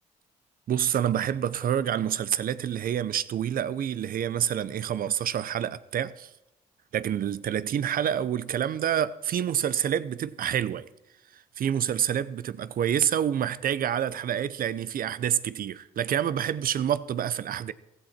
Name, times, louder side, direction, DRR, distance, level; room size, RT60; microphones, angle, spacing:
voice 1, 0.7-6.3 6.9-10.9 11.3-17.7, right 9 dB, 65° right, 0.8 m, -27 dB
15.5 x 14.5 x 4.4 m
supercardioid pair, 65°, 16 cm